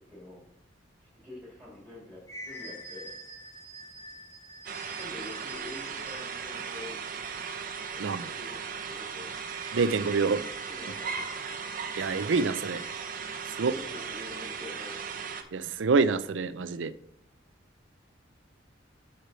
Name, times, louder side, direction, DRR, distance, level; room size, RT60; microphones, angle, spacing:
voice 1, 0.1-0.4 1.0-3.1 4.9-7.0 7.9-9.3 10.6-11.4 13.7-15.0, left 1 dB, ahead, -8 dB, 3.2 m, -46 dB
sound 1, 1.8-6.5 9.3-13.3, equal, 15° left, 1.7 m, -47 dB
sound 2, 4.6-15.4, right 6 dB, 50° right, 0.9 m, -37 dB
voice 2, 9.7-10.4 12.0-12.8 13.5-13.8 15.5-16.9, right 4 dB, 80° right, 14 dB, 0.5 m, -26 dB
6.8 x 6.5 x 4.4 m, 0.77 s
head